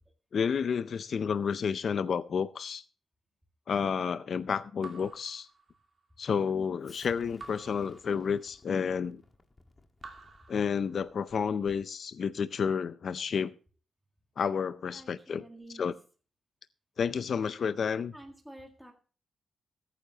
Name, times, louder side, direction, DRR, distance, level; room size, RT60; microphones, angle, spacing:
voice 1, 0.3-2.8 3.7-5.5 6.2-9.2 10.5-13.5 14.4-15.4 15.7-16.0 17.0-18.1, left 6 dB, 55° left, 0.5 m, -30 dB
Raindrop / Drip, 4.8-6.2 7.4-8.8 10.0-11.4, right 3 dB, 40° right, 2.6 m, -51 dB
Explosion, 6.8-12.0, left 2 dB, 25° left, 1.5 m, -58 dB
voice 2, 14.9-15.9 18.1-18.9, right 1 dB, ahead, 1.8 m, -49 dB
21.5 x 9.2 x 2.8 m
wide cardioid pair, 145°, 0 cm